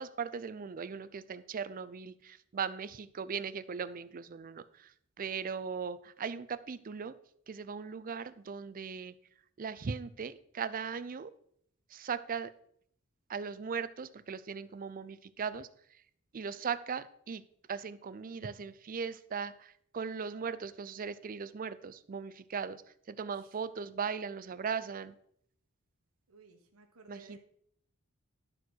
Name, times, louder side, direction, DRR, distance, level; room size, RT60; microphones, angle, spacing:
voice 1, 0.0-7.2 7.5-9.1 9.6-11.3 11.9-12.5 13.3-15.7 16.3-17.4 17.7-22.8 23.1-25.2 27.1-27.4, right 6 dB, 40° right, 14 dB, 0.4 m, -38 dB
voice 2, 23.2-23.6 26.3-27.4, right 3 dB, 75° right, 3 dB, 1.3 m, -57 dB
11.5 x 4.5 x 6.2 m, 0.68 s
head